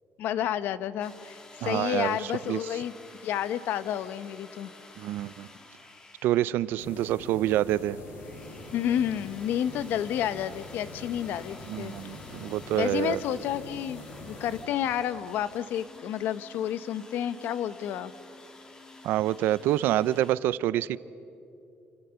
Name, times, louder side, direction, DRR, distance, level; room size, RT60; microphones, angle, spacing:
voice 1, 0.2-2.9 3.2-4.7 8.7-11.9 12.8-18.1, left 10 dB, 65° left, 14 dB, 0.9 m, -30 dB
sound 1, 1.0-7.2 8.0-20.3, left 2 dB, 20° left, 1.8 m, -51 dB
voice 2, 1.6-2.6 5.0-5.5 6.2-8.0 11.7-13.2 19.0-21.0, right 13 dB, 70° right, 18 dB, 0.6 m, -27 dB
sound 2, 6.8-14.6, left 2 dB, 80° left, 5.8 m, -44 dB
28.0 x 26.0 x 7.0 m, 2.8 s
cardioid pair, 170°, 4 cm